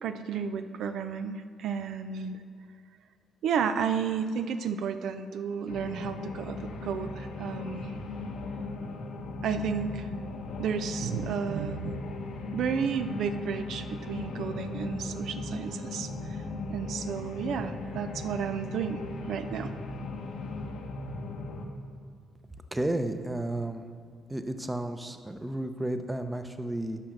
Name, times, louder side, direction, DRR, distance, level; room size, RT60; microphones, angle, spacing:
voice 1, 0.0-2.4 3.4-7.9 9.4-10.1 10.6-12.0 12.5-16.4 16.7-19.7, right 7 dB, 75° right, 9 dB, 0.4 m, -32 dB
sound 1, 5.7-21.7, left 2 dB, 80° left, 1.1 m, -37 dB
voice 2, 22.7-23.8 24.3-27.0, right 1 dB, 10° right, 8 dB, 0.7 m, -32 dB
9.9 x 5.9 x 6.5 m, 2.1 s
cardioid pair, 90°, 0 cm